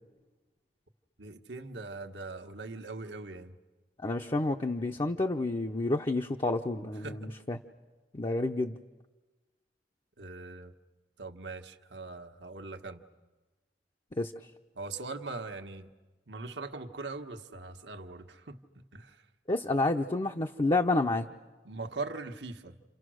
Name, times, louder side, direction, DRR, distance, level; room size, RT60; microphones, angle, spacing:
voice 1, 1.2-3.6 7.0-7.3 10.2-10.7 11.2-13.0 14.7-15.9 16.3-19.2 21.6-22.8, right 3 dB, 70° right, 6 dB, 1.4 m, -41 dB
voice 2, 4.0-7.6 8.1-8.8 14.1-14.3 19.5-21.3, left 2 dB, 30° left, 2 dB, 0.8 m, -29 dB
30.0 x 28.0 x 6.4 m, 1.2 s
head